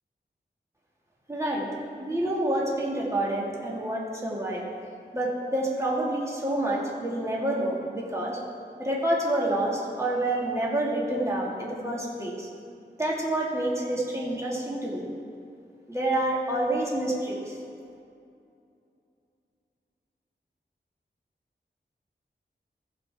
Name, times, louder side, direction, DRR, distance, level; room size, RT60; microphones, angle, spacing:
voice 1, 1.3-1.7 2.0-4.6 5.1-8.4 8.8-12.5 13.0-15.0 15.9-17.6, right 1 dB, 15° right, -4 dB, 2.0 m, -28 dB
16.0 x 6.9 x 3.5 m, 2.5 s
wide cardioid pair, 80°, 19 cm